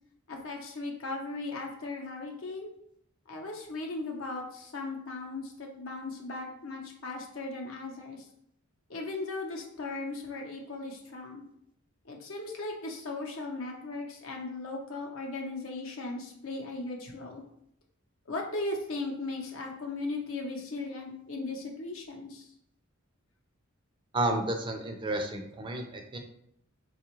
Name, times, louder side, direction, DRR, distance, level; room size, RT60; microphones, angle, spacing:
voice 1, 0.3-2.7 3.3-8.2 8.9-11.4 12.1-17.4 18.3-22.5, left 2 dB, 70° left, 1 dB, 0.8 m, -37 dB
voice 2, 24.1-26.2, right 1 dB, 25° right, 4 dB, 0.4 m, -31 dB
4.1 x 2.4 x 3.0 m, 0.72 s
head